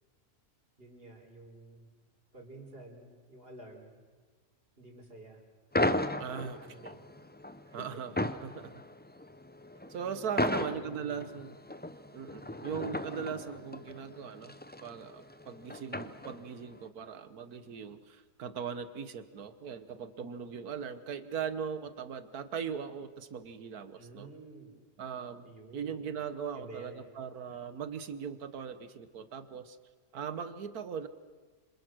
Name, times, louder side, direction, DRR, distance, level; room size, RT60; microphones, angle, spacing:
voice 1, 0.8-1.9 2.3-4.0 4.8-5.4 6.3-6.9 7.6-7.9 10.4-11.4 24.0-24.7 25.4-26.0 26.5-27.0, right 1 dB, 40° right, 0 dB, 4.3 m, -49 dB
Digger smashing concrete, 5.7-16.7, left 1 dB, 15° left, 0.3 m, -36 dB
voice 2, 6.2-7.0 7.7-8.1 8.4-8.8 9.9-11.5 12.1-14.5 14.8-24.3 25.0-29.8 30.1-31.1, right 7 dB, 85° right, 12 dB, 1.7 m, -39 dB
27.0 x 27.0 x 6.2 m, 1.4 s
omnidirectional pair, 1.5 m